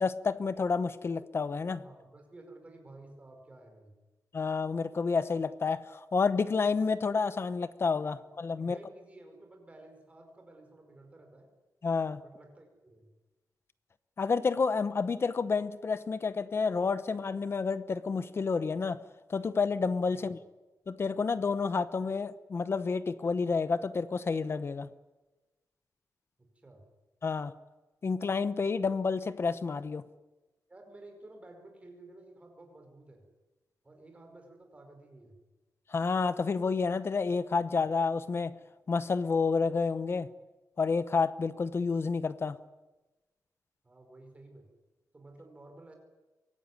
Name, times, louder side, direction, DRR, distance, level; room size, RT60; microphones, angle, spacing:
voice 1, 0.0-1.8 4.3-8.8 11.8-12.2 14.2-19.0 19.3-20.4 20.9-24.9 27.2-27.5 28.0-30.0 35.9-38.6 38.9-40.3 40.8-42.6, left 4 dB, 40° left, 14 dB, 0.8 m, -29 dB
voice 2, 1.8-4.0 8.2-11.5 12.2-13.1 20.1-20.3 26.6-26.9 30.7-33.3 33.8-35.4 43.8-44.7 45.1-46.0, right 2 dB, 20° right, 4 dB, 4.9 m, -53 dB
24.0 x 17.5 x 9.4 m, 1.2 s
wide cardioid pair, 175°, 7 cm